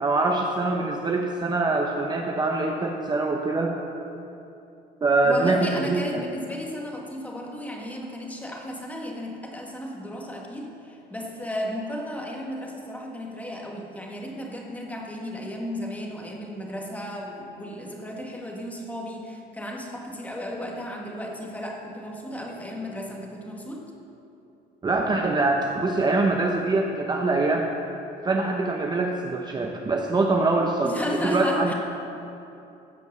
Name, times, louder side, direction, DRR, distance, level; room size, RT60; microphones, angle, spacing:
voice 1, 0.0-3.7 5.0-6.2 24.8-27.7 28.2-31.0 31.2-31.7, right 3 dB, 25° right, 2 dB, 0.8 m, -24 dB
voice 2, 5.2-23.9 30.8-31.7, equal, 10° left, 0 dB, 1.7 m, -34 dB
15.5 x 5.3 x 6.8 m, 2.8 s
cardioid pair, 110°, 17 cm